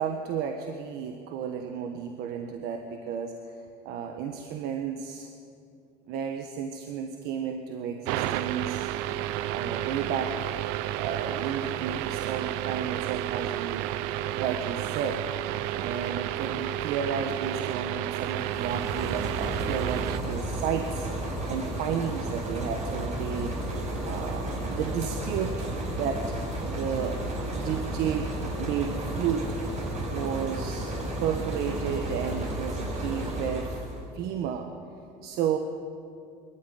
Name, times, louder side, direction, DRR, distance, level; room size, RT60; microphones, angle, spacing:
voice 1, 0.0-5.3 6.1-8.9 9.5-10.6 11.0-13.9 14.3-15.2 15.7-21.1 21.5-23.5 24.0-25.7 26.0-28.3 28.6-29.5 30.1-33.8 34.1-34.7 35.2-35.6, right 7 dB, 70° right, 5 dB, 1.4 m, -32 dB
sound 1, 8.1-20.2, right 13 dB, 85° right, 0.7 m, -31 dB
sound 2, 18.3-34.0, right 1 dB, 40° right, 5.7 m, -33 dB
22.0 x 13.0 x 9.3 m, 2.5 s
cardioid pair, 125°, 17 cm